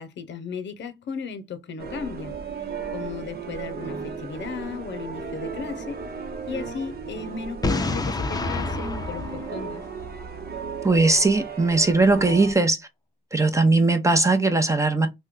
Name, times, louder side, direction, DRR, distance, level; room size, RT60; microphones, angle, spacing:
voice 1, 0.0-2.4 2.9-6.0 6.5-9.8, left 5 dB, 85° left, 0.6 m, -35 dB
sound 1, 1.8-12.5, right 5 dB, 60° right, 0.8 m, -35 dB
Boom, 7.6-10.5, left 2 dB, 20° left, 0.5 m, -28 dB
voice 2, 10.8-12.8 13.3-15.1, right 3 dB, 15° right, 0.7 m, -19 dB
3.0 x 2.2 x 3.5 m
cardioid pair, 85°, 18 cm